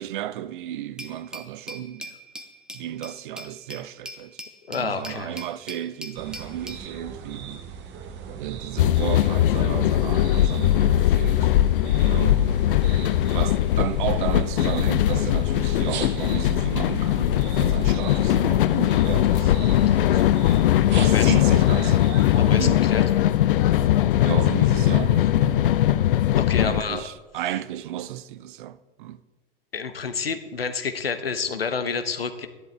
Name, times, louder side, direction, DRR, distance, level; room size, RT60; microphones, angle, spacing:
voice 1, 0.0-2.1 2.7-4.4 4.7-7.6 8.3-11.5 12.1-12.6 13.2-19.6 20.1-20.3 21.0-22.1 22.5-22.8 23.7-23.9 24.2-25.6 26.6-29.2, right 12 dB, 60° right, 0.6 m, -33 dB
Glass, 1.0-6.9, equal, 5° right, 1.0 m, -41 dB
voice 2, 4.7-5.3 19.7-20.0 20.9-21.3 22.3-23.0 26.4-27.0 29.7-32.5, left 5 dB, 80° left, 0.9 m, -29 dB
sound 1, 6.2-23.1, right 7 dB, 40° right, 1.2 m, -39 dB
sound 2, 8.8-26.8, left 12 dB, 65° left, 0.5 m, -20 dB
12.5 x 11.0 x 3.4 m
figure-of-eight pair, 80°, 29 cm